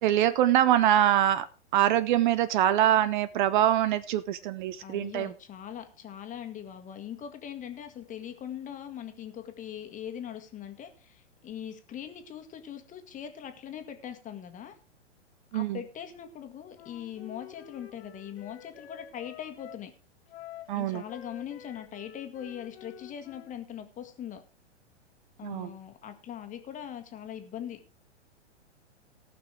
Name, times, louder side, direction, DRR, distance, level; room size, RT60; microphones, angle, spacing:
voice 1, 0.0-1.5 1.7-5.3 15.5-15.8 20.7-21.0 25.4-25.7, right 12 dB, 45° right, 16 dB, 0.6 m, -24 dB
voice 2, 4.8-14.7 15.5-19.9 20.7-24.4 25.4-27.8, left 9 dB, 20° left, 7 dB, 1.7 m, -41 dB
Wind instrument woodwind instrument, 16.7-19.8 20.3-23.5, left 10 dB, 60° left, 1.9 m, -49 dB
17.5 x 6.0 x 4.7 m, 0.34 s
hypercardioid pair, 120°, 35 cm